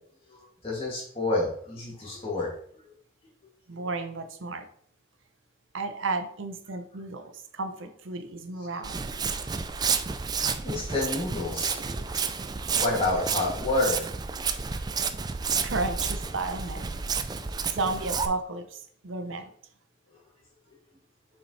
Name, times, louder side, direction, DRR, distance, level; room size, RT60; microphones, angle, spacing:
voice 1, 0.3-2.5 9.4-9.5 10.4-12.0 12.7-14.0 17.7-17.8, left 2 dB, 30° left, -5 dB, 2.6 m, -29 dB
voice 2, 3.7-4.7 5.7-9.2 15.6-17.0 17.7-19.5, right 3 dB, 75° right, 8 dB, 0.8 m, -33 dB
Walk footsteps, 8.8-18.3, right 5 dB, 20° right, 0.3 m, -30 dB
7.0 x 5.3 x 3.3 m, 0.62 s
head